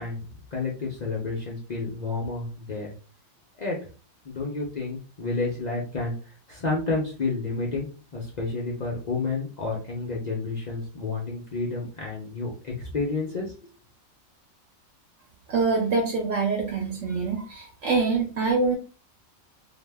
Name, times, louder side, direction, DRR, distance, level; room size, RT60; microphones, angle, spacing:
voice 1, 0.0-2.9 3.6-3.8 4.2-6.1 6.5-13.7, left 3 dB, 60° left, -2 dB, 0.4 m, -30 dB
voice 2, 15.5-18.8, right 4 dB, 65° right, 0 dB, 1.0 m, -25 dB
2.5 x 2.0 x 3.3 m, 0.37 s
omnidirectional pair, 1.5 m